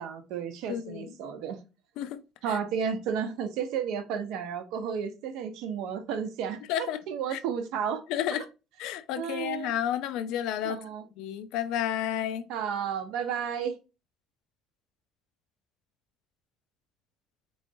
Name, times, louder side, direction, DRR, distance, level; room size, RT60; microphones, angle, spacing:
voice 1, 0.0-1.6 2.4-8.0 8.3-8.4 9.2-9.7 10.6-11.0 12.5-13.8, right 7 dB, 80° right, 0.7 m, -32 dB
voice 2, 0.7-1.1 2.0-2.2 2.5-2.6 6.7-7.0 7.3-7.4 8.1-8.5 8.8-10.8 11.2-12.5, left 10 dB, 80° left, 0.5 m, -31 dB
4.2 x 3.1 x 2.6 m
cardioid pair, 150°, 0 cm